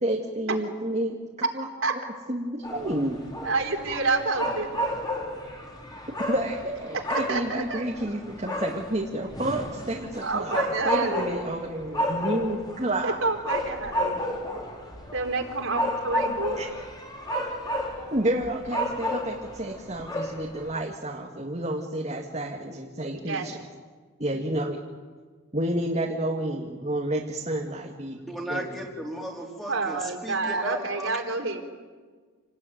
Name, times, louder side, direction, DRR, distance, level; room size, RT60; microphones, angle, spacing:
voice 1, 0.0-1.2 1.5-1.7 2.3-3.2 3.9-4.0 6.3-13.2 16.6-16.7 18.1-23.6 24.2-24.8 25.5-28.2 28.5-28.7, right 1 dB, 30° right, 0 dB, 2.1 m, -30 dB
sound 1, 2.6-20.7, equal, 20° left, 3.9 m, -32 dB
voice 2, 3.4-4.7 7.3-7.8 10.2-11.4 13.0-14.4 15.1-16.6 23.1-23.4 29.7-31.6, right 3 dB, 65° right, 3 dB, 3.9 m, -28 dB
voice 3, 28.3-31.2, equal, ahead, -1 dB, 3.7 m, -35 dB
29.5 x 19.0 x 9.4 m, 1.5 s
head